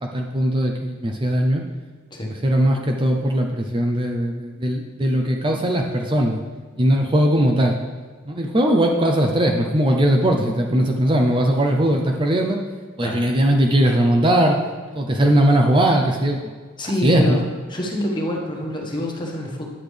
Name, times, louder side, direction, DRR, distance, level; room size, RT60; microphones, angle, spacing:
voice 1, 0.0-1.6 2.4-6.4 6.8-7.8 8.3-12.6 13.0-14.6 14.9-16.5 17.0-17.4, right 1 dB, 25° right, 2 dB, 0.6 m, -19 dB
voice 2, 16.8-17.4 17.7-19.7, left 1 dB, 25° left, -1 dB, 1.5 m, -26 dB
11.0 x 8.0 x 3.4 m, 1.5 s
head